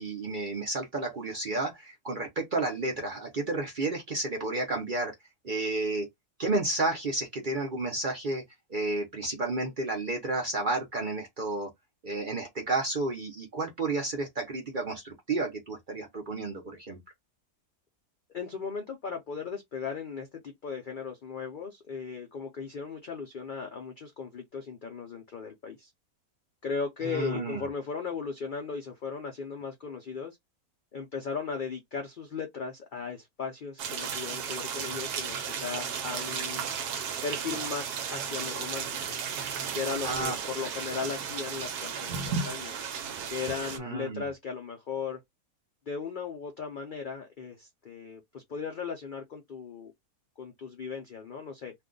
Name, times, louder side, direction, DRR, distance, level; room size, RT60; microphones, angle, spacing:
voice 1, 0.0-5.1 5.4-6.1 6.4-8.4 8.7-11.7 12.0-17.0 27.0-27.7 40.0-40.4 43.8-44.3, right 2 dB, 50° right, 0.6 m, -31 dB
voice 2, 18.3-25.9 26.6-30.4 30.9-36.6 37.2-38.9 39.7-42.7 43.3-45.2 45.9-49.9 50.4-51.7, left 5 dB, 85° left, 0.4 m, -37 dB
sound 1, 33.8-43.8, right 6 dB, 80° right, 1.1 m, -34 dB
2.5 x 2.3 x 3.7 m
omnidirectional pair, 1.7 m